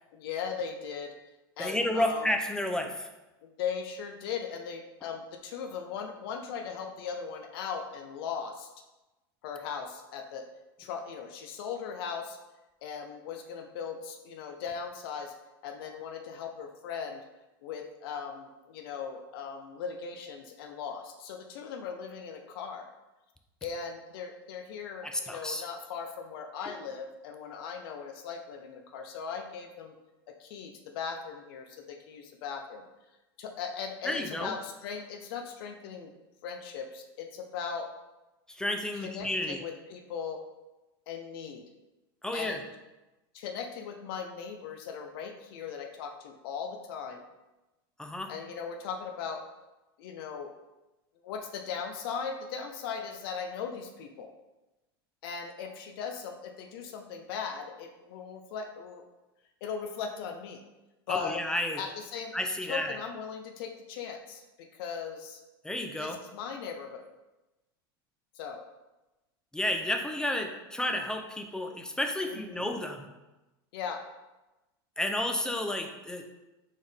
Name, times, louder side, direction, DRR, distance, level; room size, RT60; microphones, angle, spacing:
voice 1, 0.1-1.1 1.6-2.3 3.4-8.7 9.4-10.4 10.8-12.4 12.8-15.3 15.6-17.2 17.6-22.9 23.6-29.9 30.4-32.8 33.4-36.1 36.4-37.9 38.9-40.4 41.1-41.6 42.3-42.7 43.3-47.2 48.3-49.4 50.0-50.5 51.2-54.3 55.2-59.0 59.6-60.6 61.1-61.4 61.8-62.3 62.6-65.4 66.0-67.1 68.3-68.6 72.2-72.7 73.7-74.0, left 6 dB, 70° left, 4 dB, 0.5 m, -38 dB
voice 2, 1.6-3.1 25.0-25.6 34.1-34.5 38.5-39.6 42.2-42.6 48.0-48.3 61.1-61.8 62.3-63.0 65.6-66.2 69.5-73.1 75.0-76.3, left 1 dB, 5° left, 4 dB, 0.5 m, -31 dB
4.2 x 3.6 x 3.4 m, 1.0 s
supercardioid pair, 115°, 13 cm